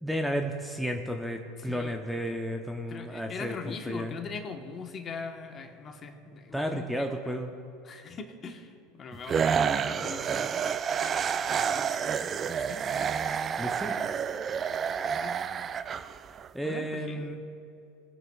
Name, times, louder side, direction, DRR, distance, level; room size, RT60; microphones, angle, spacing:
voice 1, 0.0-4.1 6.5-7.5 13.6-14.1 16.5-17.4, equal, ahead, 3 dB, 0.8 m, -33 dB
voice 2, 1.6-1.9 2.9-7.4 7.8-10.5 11.6-11.9 12.2-13.2 15.2-15.4 16.6-17.3, left 5 dB, 35° left, 4 dB, 1.3 m, -41 dB
sound 1, 9.3-16.5, right 7 dB, 35° right, 0.4 m, -29 dB
20.5 x 9.1 x 2.4 m, 2.6 s
hypercardioid pair, 85°, 0 cm